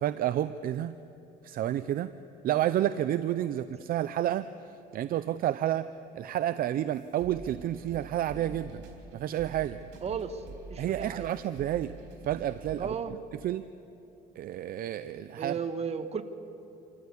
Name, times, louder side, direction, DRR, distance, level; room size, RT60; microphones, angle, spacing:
voice 1, 0.0-0.9 1.4-2.1 2.4-4.5 4.9-5.9 6.1-8.8 9.1-9.8 10.8-11.9 12.3-12.9 13.4-13.6 14.4-15.5, right 12 dB, 60° right, 13 dB, 0.6 m, -30 dB
sound 1, 6.9-12.9, right 3 dB, 75° right, 3.8 m, -46 dB
voice 2, 10.0-10.4 10.7-11.3 12.8-13.1 15.4-16.2, right 6 dB, 40° right, 9 dB, 1.4 m, -34 dB
27.0 x 14.5 x 8.4 m, 2.8 s
cardioid pair, 110°, 17 cm